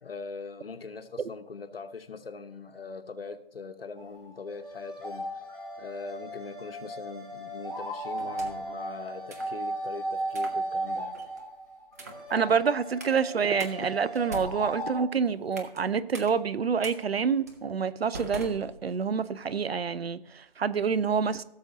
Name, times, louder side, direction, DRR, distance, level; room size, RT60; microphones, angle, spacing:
voice 1, 0.0-5.4 5.8-11.2, left 4 dB, 70° left, 1.0 m, -41 dB
sound 1, 4.0-15.0, right 1 dB, 5° left, 1.0 m, -36 dB
sound 2, 8.2-8.8 9.3-9.6 10.3-10.6 11.1-11.4 11.9-12.3 13.0-13.2 13.6-13.7 14.2-15.8 16.1-16.3 16.8-17.0 17.5-17.6 18.1-19.2, right 2 dB, 15° right, 0.6 m, -42 dB
voice 2, 12.3-21.4, right 6 dB, 85° right, 0.6 m, -27 dB
16.0 x 7.0 x 2.7 m
figure-of-eight pair, 155°, 30 cm